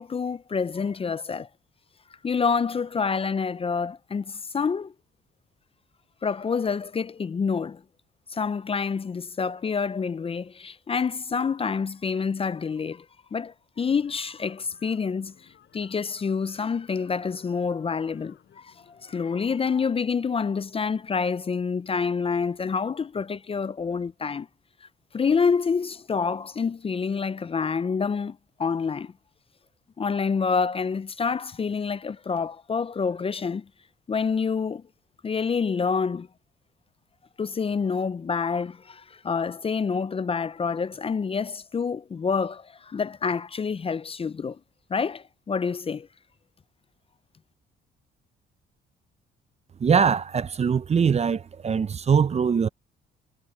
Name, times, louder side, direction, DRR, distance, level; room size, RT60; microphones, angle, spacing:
voice 1, 0.0-1.5 2.2-4.9 6.2-7.8 8.3-13.1 13.3-15.3 15.7-24.5 25.1-29.1 30.0-33.6 34.1-34.8 35.2-36.3 37.4-44.6 44.9-46.1, left 5 dB, 30° left, 0.5 m, -27 dB
sound 1, 13.9-19.9, left 9 dB, 65° left, 7.2 m, -58 dB
voice 2, 49.8-52.7, right 6 dB, 35° right, 0.6 m, -22 dB
cardioid pair, 90°, 20 cm